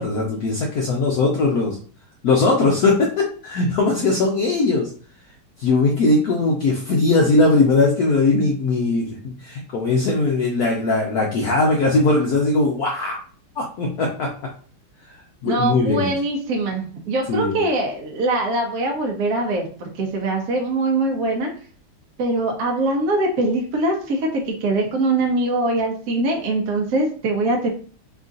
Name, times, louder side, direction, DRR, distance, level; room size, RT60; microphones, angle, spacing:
voice 1, 0.0-1.8 2.2-4.9 5.6-13.2 13.6-14.3 15.4-16.1 17.3-17.6, left 3 dB, 85° left, -1 dB, 0.8 m, -19 dB
voice 2, 15.4-21.5 22.2-27.7, right 2 dB, 70° right, 1 dB, 0.8 m, -22 dB
3.6 x 2.4 x 3.8 m, 0.43 s
omnidirectional pair, 2.4 m